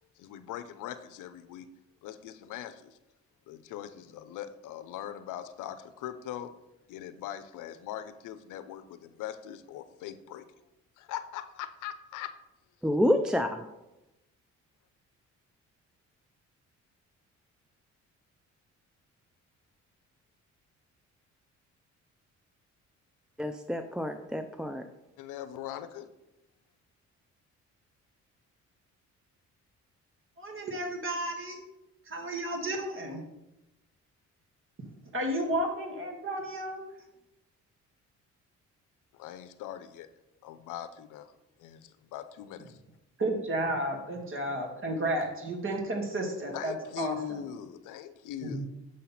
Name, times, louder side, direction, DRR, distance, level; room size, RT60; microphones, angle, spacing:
voice 1, 0.2-1.7 2.0-3.0 3.5-6.5 6.9-10.5 11.0-12.4 25.2-26.1 39.1-40.1 40.4-41.3 41.6-42.8 46.5-48.7, left 11 dB, 90° left, 11 dB, 0.6 m, -41 dB
voice 2, 12.8-13.7 23.4-24.8, left 1 dB, 5° right, 7 dB, 0.3 m, -28 dB
voice 3, 30.4-31.6 32.0-33.2 35.1-36.8 43.2-47.4 48.4-48.6, right 1 dB, 45° right, 2 dB, 1.8 m, -32 dB
6.4 x 4.2 x 5.8 m, 0.96 s
cardioid pair, 90°, 30 cm